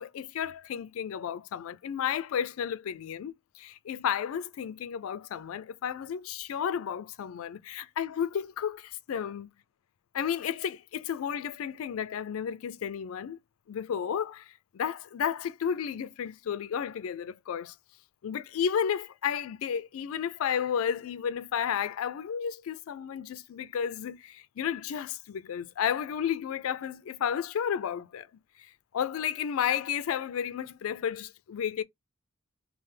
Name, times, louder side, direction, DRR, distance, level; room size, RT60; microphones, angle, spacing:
voice 1, 0.0-9.5 10.1-13.4 13.7-17.7 18.2-28.3 28.9-31.8, left 8 dB, 80° left, 0.4 m, -32 dB
3.2 x 2.0 x 3.2 m
head